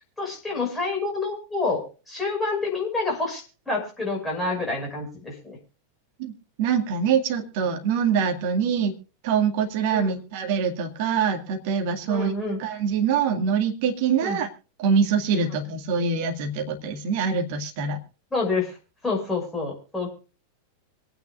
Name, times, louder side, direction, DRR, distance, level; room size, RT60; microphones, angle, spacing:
voice 1, 0.2-5.6 9.9-10.1 12.1-12.6 14.2-14.4 15.5-15.6 18.3-18.7 19.0-20.1, left 3 dB, 10° left, -1 dB, 5.8 m, -28 dB
voice 2, 6.6-8.9 9.2-12.3 12.6-14.5 14.8-18.0, right 6 dB, 50° right, 4 dB, 2.0 m, -24 dB
25.5 x 9.2 x 2.5 m, 0.34 s
figure-of-eight pair, 90°, 0 cm